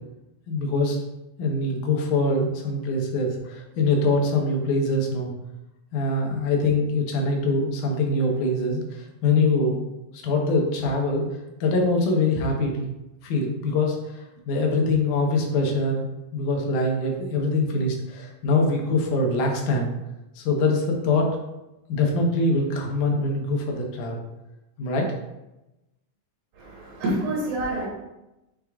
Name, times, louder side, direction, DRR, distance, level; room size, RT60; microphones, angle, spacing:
voice 1, 0.5-1.0 1.4-5.3 5.9-9.8 10.2-11.2 11.6-12.9 13.2-20.0 20.4-21.3 21.9-24.2 24.8-25.1, left 2 dB, 90° left, 1 dB, 2.3 m, -23 dB
voice 2, 26.6-27.9, right 1 dB, 70° right, -4 dB, 2.6 m, -27 dB
6.3 x 2.3 x 3.4 m, 0.95 s
omnidirectional pair, 3.5 m